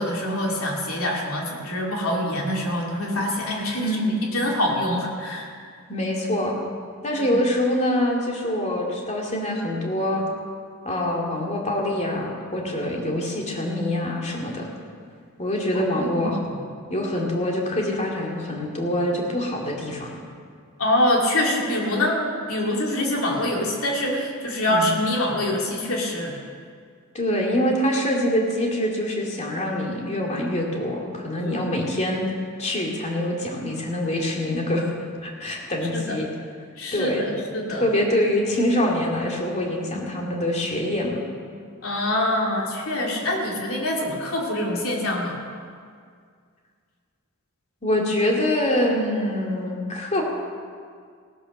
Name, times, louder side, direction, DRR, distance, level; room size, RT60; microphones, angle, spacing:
voice 1, 0.0-5.5 7.2-7.4 15.7-16.5 20.8-22.2 22.5-26.3 31.4-31.6 35.9-36.2 36.8-37.8 41.8-45.4, left 1 dB, 75° left, -1 dB, 2.9 m, -25 dB
voice 2, 3.8-4.2 5.9-6.6 7.0-10.2 10.8-14.7 15.4-16.4 16.9-20.2 24.7-24.9 27.1-32.3 32.6-34.9 35.2-36.3 36.9-37.2 37.7-41.2 47.8-50.2, left 1 dB, 35° left, -1 dB, 2.5 m, -25 dB
17.0 x 10.5 x 6.6 m, 2.1 s
head